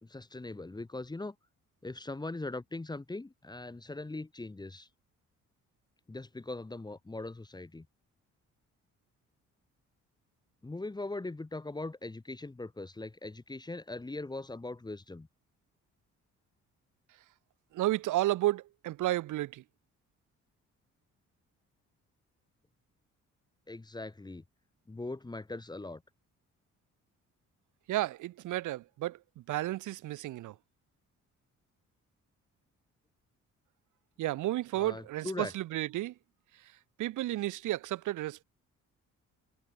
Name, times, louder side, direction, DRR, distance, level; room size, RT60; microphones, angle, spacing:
voice 1, 0.0-1.3 1.8-4.9 6.1-7.9 10.6-15.3 23.7-24.4 24.9-26.0 34.7-35.5, left 2 dB, 15° left, 1.2 m, -40 dB
voice 2, 17.7-19.6 27.9-30.5 34.2-36.1 37.0-38.4, right 16 dB, 85° right, 1.4 m, -32 dB
cardioid pair, 90°, 30 cm